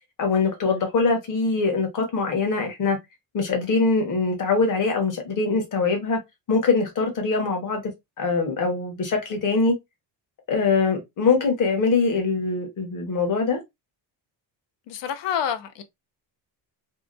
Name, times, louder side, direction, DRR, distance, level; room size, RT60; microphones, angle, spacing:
voice 1, 0.2-3.0 3.3-6.2 6.5-7.8 8.2-9.8 10.5-13.6, left 4 dB, 45° left, 1.0 m, -23 dB
voice 2, 14.9-15.8, left 8 dB, 65° left, 0.6 m, -28 dB
2.8 x 2.2 x 2.4 m
cardioid pair, 165°, 45 cm